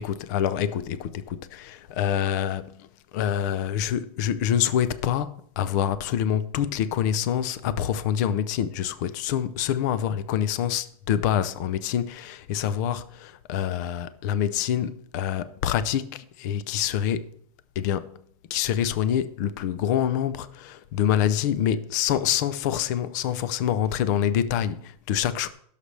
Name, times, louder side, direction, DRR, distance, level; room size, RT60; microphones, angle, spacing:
voice 1, 0.0-2.9 3.1-17.3 17.8-18.2 18.5-25.5, left 9 dB, 30° left, 0.5 m, -26 dB
17.0 x 6.6 x 3.3 m
supercardioid pair, 170°, 19 cm